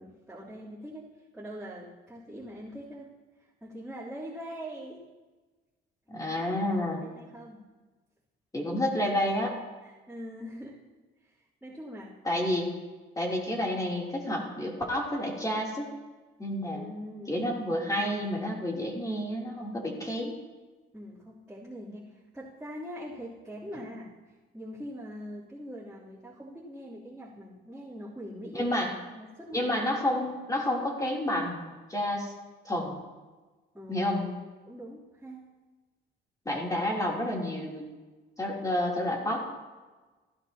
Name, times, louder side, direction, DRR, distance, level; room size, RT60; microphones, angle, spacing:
voice 1, 0.0-3.1 3.6-5.0 6.3-6.6 7.0-7.6 9.8-10.8 11.2-11.3 11.6-12.1 13.3-13.4 16.7-17.3 20.9-24.1 24.5-28.8 29.1-29.7 33.7-34.1 34.7-35.4, equal, 5° right, -11 dB, 3.3 m, -43 dB
voice 2, 6.1-7.1 8.5-9.5 12.2-12.7 13.1-15.9 16.4-16.8 17.3-20.3 28.5-28.9 29.5-32.3 32.6-33.0 33.9-34.3 36.4-37.8 38.4-39.5, left 1 dB, 15° left, -3 dB, 3.3 m, -30 dB
15.5 x 12.0 x 2.9 m, 1.3 s
cardioid pair, 90°, 20 cm